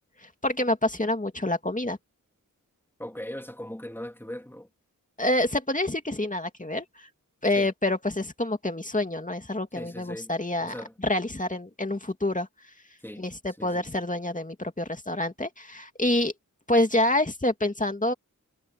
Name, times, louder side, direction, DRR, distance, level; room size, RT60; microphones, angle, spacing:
voice 1, 0.2-2.0 5.2-7.1 7.4-10.7 11.0-12.5 13.2-16.3 16.7-18.1, left 1 dB, 25° left, 2.5 m, -27 dB
voice 2, 3.0-4.7 7.6-7.7 9.8-10.3 10.6-10.9 13.0-13.2 13.6-13.9, left 1 dB, 5° left, 3.5 m, -39 dB
cardioid pair, 55°, 33 cm